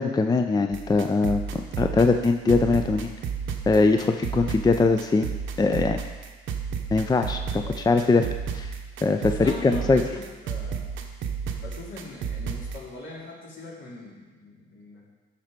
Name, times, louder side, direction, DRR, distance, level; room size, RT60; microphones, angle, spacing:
voice 1, 0.0-3.1 3.7-5.3 5.6-6.0 6.9-8.3 8.5-8.7 9.0-10.0, left 3 dB, 20° left, 6 dB, 0.5 m, -22 dB
sound 1, 0.7-12.8, right 6 dB, 75° right, 0.9 m, -33 dB
voice 2, 7.3-7.8 9.2-10.9 11.6-15.0, left 2 dB, 70° left, -4 dB, 2.7 m, -42 dB
12.5 x 4.4 x 5.1 m, 1.3 s
cardioid pair, 90°, 20 cm